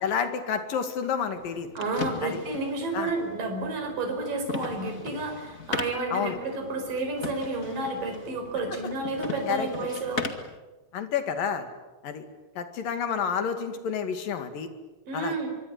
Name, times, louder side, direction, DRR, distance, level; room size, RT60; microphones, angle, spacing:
voice 1, 0.0-1.7 2.2-2.4 2.9-3.1 6.1-6.4 9.5-9.9 10.9-11.7 12.0-12.2 12.6-14.7 15.1-15.3, left 7 dB, 75° left, 8 dB, 4.0 m, -29 dB
sound 1, 1.3-10.6, left 4 dB, 30° left, 1.9 m, -38 dB
voice 2, 1.8-10.3 15.1-15.5, right 3 dB, 70° right, 4 dB, 6.4 m, -31 dB
25.0 x 24.5 x 9.7 m, 1.2 s
omnidirectional pair, 4.1 m